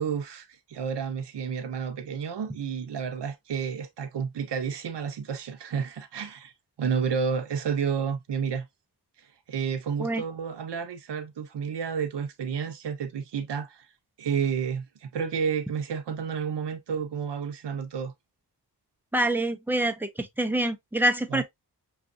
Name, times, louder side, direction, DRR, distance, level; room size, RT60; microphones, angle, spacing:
voice 1, 0.0-6.5 6.8-8.7 9.2-13.9 14.2-18.1 21.3-21.4, right 6 dB, 90° right, 0.7 m, -31 dB
voice 2, 19.1-21.4, right 1 dB, 5° right, 0.7 m, -26 dB
6.0 x 2.5 x 2.5 m
wide cardioid pair, 70°, 40 cm